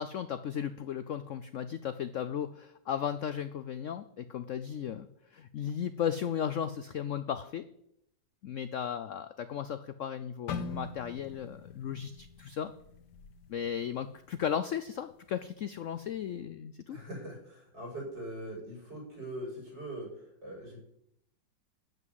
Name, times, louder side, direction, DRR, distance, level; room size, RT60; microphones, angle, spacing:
voice 1, 0.0-7.7 8.4-12.7 13.5-17.0, left 8 dB, 90° left, 12 dB, 0.6 m, -35 dB
sound 1, 10.5-14.5 14.9-15.1 15.8-16.1, left 5 dB, 65° left, 1.4 m, -43 dB
voice 2, 16.9-20.8, right 1 dB, 70° right, -1 dB, 6.4 m, -42 dB
12.0 x 6.1 x 9.4 m, 0.75 s
omnidirectional pair, 2.0 m